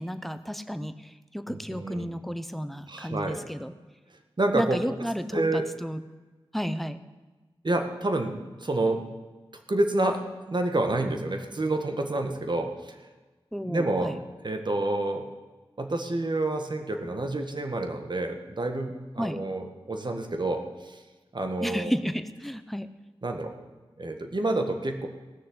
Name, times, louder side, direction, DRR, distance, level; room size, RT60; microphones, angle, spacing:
voice 1, 0.0-3.7 4.5-6.0 6.5-7.0 13.5-14.2 19.2-19.4 21.6-22.9, equal, ahead, 11 dB, 0.9 m, -32 dB
voice 2, 1.5-2.1 2.9-3.4 4.4-4.8 5.3-5.7 7.6-9.0 9.7-10.2 10.5-12.9 13.7-14.1 14.4-15.3 15.8-21.0 21.3-21.9 23.2-23.5 24.0-25.1, right 2 dB, 50° right, 5 dB, 1.8 m, -28 dB
17.0 x 6.5 x 7.9 m, 1.3 s
cardioid pair, 40°, 10 cm